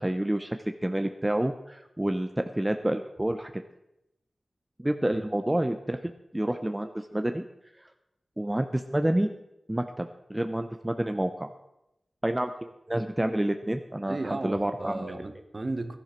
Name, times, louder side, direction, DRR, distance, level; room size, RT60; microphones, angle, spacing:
voice 1, 0.0-3.6 4.8-7.4 8.4-9.3 9.7-11.5 12.2-15.0, right 1 dB, 15° right, 7 dB, 0.7 m, -29 dB
voice 2, 14.1-16.0, right 2 dB, 45° right, 8 dB, 1.3 m, -34 dB
16.0 x 11.5 x 4.5 m, 0.88 s
cardioid pair, 50°, 0 cm